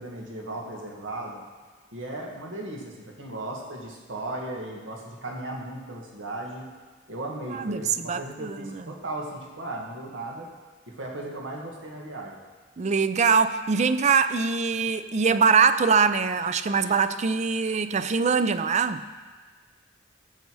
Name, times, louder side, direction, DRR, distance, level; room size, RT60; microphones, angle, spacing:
voice 1, 0.0-1.4 1.9-6.7 7.1-10.5 10.9-12.4, right 1 dB, 85° right, -1 dB, 1.9 m, -36 dB
voice 2, 7.5-8.9 12.8-19.0, right 5 dB, 35° right, 12 dB, 0.4 m, -23 dB
14.5 x 6.9 x 4.8 m, 1.4 s
head